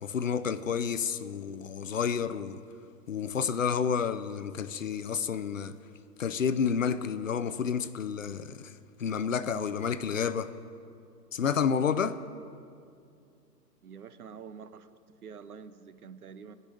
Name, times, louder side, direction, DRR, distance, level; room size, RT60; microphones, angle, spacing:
voice 1, 0.0-2.6 3.1-5.7 6.2-8.7 9.0-10.5 11.3-12.2, left 7 dB, 55° left, 0.5 m, -30 dB
voice 2, 13.8-14.9 15.2-16.5, right 6 dB, 60° right, 0.8 m, -46 dB
16.0 x 5.4 x 9.8 m
hypercardioid pair, 165°, 49 cm